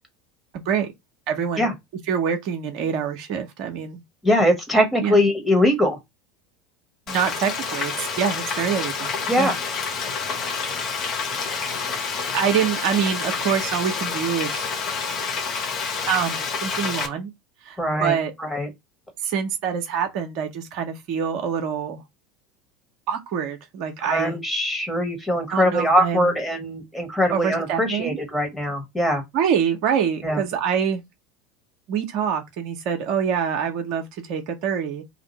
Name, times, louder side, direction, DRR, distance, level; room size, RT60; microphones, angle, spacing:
voice 1, 0.5-0.9 1.3-1.6 2.1-4.0 5.0-5.2 7.1-9.1 9.4-9.5 12.3-14.7 16.1-17.3 17.6-18.3 19.2-22.0 23.1-24.4 25.5-26.3 27.3-28.2 29.3-31.0 31.9-35.0, right 7 dB, 50° right, 0.6 m, -25 dB
voice 2, 4.2-6.0 9.3-9.5 17.8-18.7 24.0-29.2 30.2-30.4, equal, 10° left, 1.3 m, -22 dB
Frying (food), 7.1-17.1, left 5 dB, 40° left, 0.9 m, -28 dB
2.6 x 2.5 x 4.1 m
figure-of-eight pair, 75°, 0 cm